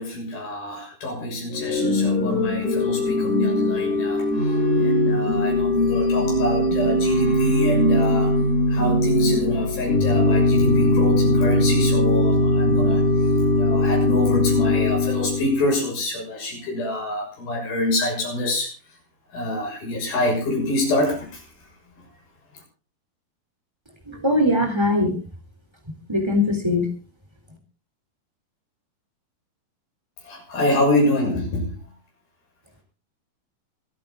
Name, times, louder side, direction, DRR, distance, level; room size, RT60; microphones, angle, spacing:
voice 1, 0.0-4.3 4.8-8.3 8.7-13.0 13.6-18.7 19.3-21.4 30.2-31.7, left 1 dB, 80° left, 0 dB, 8.4 m, -26 dB
Organ / Church bell, 1.5-15.7, left 2 dB, 55° left, 3.9 m, -20 dB
voice 2, 24.1-25.2 26.1-26.8, left 1 dB, 5° right, 4 dB, 3.3 m, -21 dB
26.0 x 9.1 x 3.9 m, 0.36 s
omnidirectional pair, 4.2 m